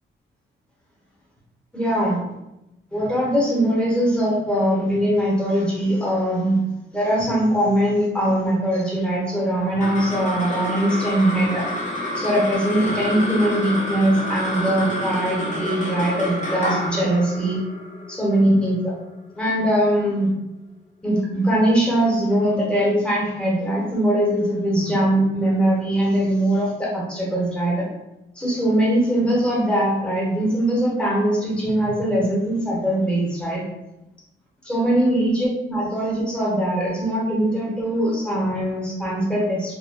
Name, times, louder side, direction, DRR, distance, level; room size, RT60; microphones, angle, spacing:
voice 1, 1.7-2.2 2.9-6.6 6.9-11.7 12.1-17.6 18.1-18.9 19.3-20.3 21.0-27.9 28.4-33.6 34.7-39.7, right 1 dB, 5° left, -5 dB, 1.0 m, -21 dB
sound 1, 9.5-20.2, equal, 40° left, 0.7 m, -29 dB
2.3 x 2.1 x 3.4 m, 0.92 s
cardioid pair, 110°, 20 cm